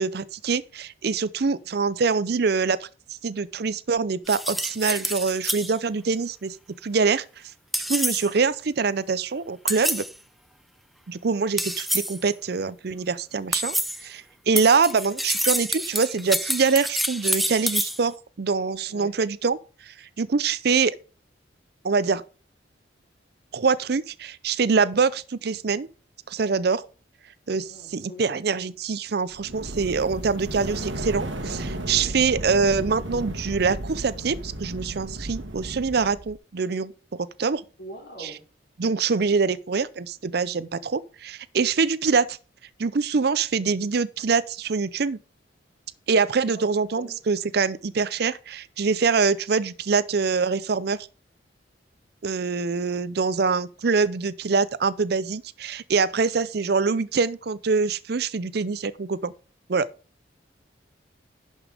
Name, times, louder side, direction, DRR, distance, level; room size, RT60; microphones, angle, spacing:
voice 1, 0.0-2.9 3.2-6.6 6.8-7.2 7.9-10.0 11.1-13.8 14.0-19.6 19.8-20.9 21.8-22.2 23.5-25.9 26.3-26.9 27.5-37.6 38.2-38.4 38.8-42.4 42.8-45.2 46.1-51.1 52.2-59.3 59.7-59.9, right 5 dB, 55° right, 0.5 m, -24 dB
sound 1, 4.3-5.7 7.7-8.3 9.7-10.1 11.6-12.2 13.5-14.0 14.6-18.0, equal, ahead, 0.4 m, -27 dB
voice 2, 27.7-28.3 31.9-32.1 37.8-38.4 46.5-47.2, right 1 dB, 60° left, 4.5 m, -43 dB
sound 2, 29.3-36.3, right 1 dB, 80° right, 1.5 m, -34 dB
11.0 x 5.5 x 4.9 m
head